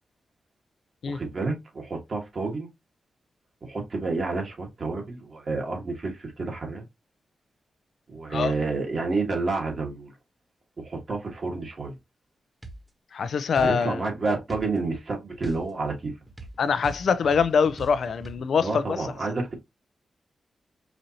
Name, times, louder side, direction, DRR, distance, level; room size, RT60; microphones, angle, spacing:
voice 1, 1.1-2.7 3.6-6.8 8.1-10.1 10.8-11.9 13.6-16.1 18.6-19.5, right 3 dB, 50° right, 1.6 m, -29 dB
sound 1, 12.6-12.9 13.6-13.8 14.5-14.7 15.4-18.4, right 2 dB, 20° right, 1.2 m, -41 dB
voice 2, 13.1-14.1 16.6-19.1, left 6 dB, 75° left, 0.4 m, -24 dB
5.0 x 2.7 x 2.8 m
cardioid pair, 90°, 0 cm